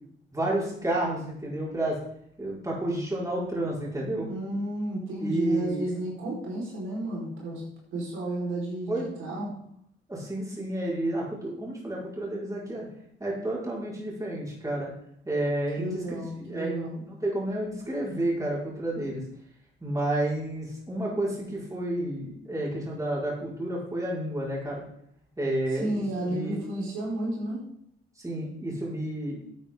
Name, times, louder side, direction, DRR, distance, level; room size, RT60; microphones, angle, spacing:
voice 1, 0.3-2.0 2.4-4.3 5.2-5.9 8.9-9.4 10.1-12.9 13.2-14.9 15.3-19.2 19.8-24.8 25.4-26.6 28.2-29.4, right 1 dB, 15° right, -5 dB, 5.5 m, -30 dB
voice 2, 4.2-7.6 7.9-9.5 15.7-17.0 25.7-27.6, right 1 dB, 80° right, -4 dB, 4.8 m, -32 dB
12.5 x 8.6 x 3.9 m, 0.68 s
cardioid pair, 90°, 20 cm